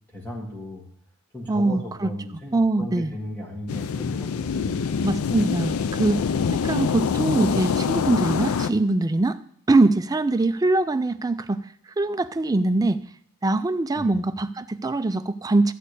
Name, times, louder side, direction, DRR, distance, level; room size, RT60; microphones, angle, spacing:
voice 1, 0.1-0.8 1.3-5.7 13.9-14.1, left 1 dB, 10° left, -2 dB, 1.6 m, -36 dB
voice 2, 1.5-2.1 2.5-3.1 5.0-6.2 6.5-9.4 9.7-11.6 12.0-13.0 13.4-15.7, right 2 dB, 15° right, 11 dB, 0.4 m, -22 dB
sound 1, 3.7-8.7, left 6 dB, 70° left, 0.4 m, -25 dB
12.0 x 4.3 x 8.2 m, 0.62 s
head